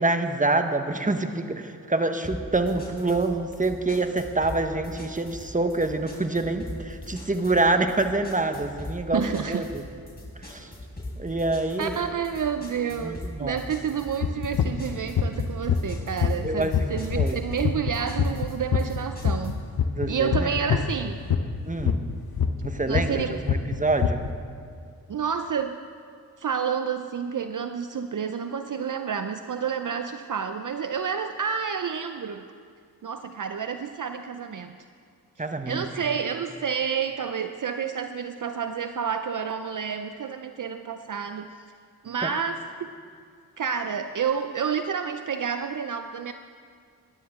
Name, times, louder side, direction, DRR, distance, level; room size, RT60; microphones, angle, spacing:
voice 1, 0.0-9.8 10.4-10.7 11.2-12.0 13.0-13.6 16.4-17.4 19.9-20.5 21.7-22.0 22.6-24.2 35.4-35.8 42.2-42.3, right 2 dB, 20° right, 7 dB, 1.3 m, -26 dB
sound 1, 2.2-19.7, left 1 dB, 25° left, 4.6 m, -41 dB
voice 2, 9.1-9.7 11.8-19.6 20.1-21.2 22.9-23.4 25.1-25.8 26.4-32.4 33.0-34.8 35.4-41.6 42.0-42.9 43.6-46.3, right 7 dB, 55° right, 8 dB, 0.6 m, -29 dB
sound 2, 14.2-21.0 21.2-24.3, left 7 dB, 70° left, 0.9 m, -24 dB
23.0 x 11.5 x 3.7 m, 2.2 s
cardioid pair, 40°, 38 cm